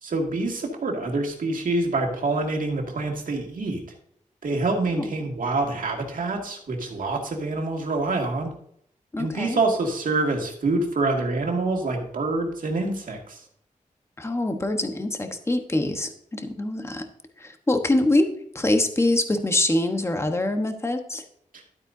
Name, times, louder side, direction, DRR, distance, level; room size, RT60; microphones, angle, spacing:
voice 1, 0.0-4.0 4.4-8.5 9.2-13.4 21.5-21.6, right 2 dB, 80° right, 1 dB, 2.3 m, -26 dB
voice 2, 9.1-9.6 14.2-17.1 17.4-18.3 18.5-21.2, left 2 dB, 20° left, 5 dB, 1.2 m, -24 dB
12.0 x 8.7 x 2.7 m, 0.68 s
wide cardioid pair, 115°, 14 cm